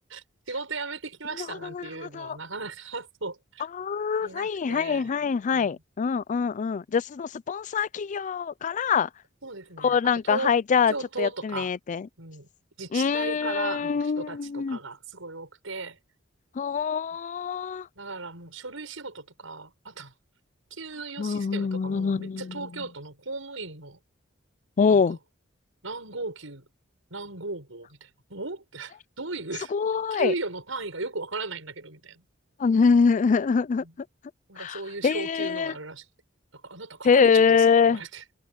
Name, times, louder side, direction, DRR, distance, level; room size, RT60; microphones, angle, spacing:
voice 1, 0.1-3.7 4.2-5.1 5.5-5.8 9.4-10.6 10.9-11.7 12.2-12.5 12.8-16.0 18.0-20.1 20.7-24.0 24.9-25.2 25.8-26.7 27.1-29.7 30.1-32.2 33.8-33.9 34.5-36.1 36.5-38.2, right 3 dB, 80° right, 7.0 m, -36 dB
voice 2, 1.4-1.9 2.1-2.4 3.7-9.1 9.8-12.1 12.9-14.8 16.6-17.9 21.2-22.7 24.8-25.2 29.7-30.3 32.6-33.8 34.6-35.7 37.0-38.0, left 6 dB, 40° left, 0.4 m, -24 dB
head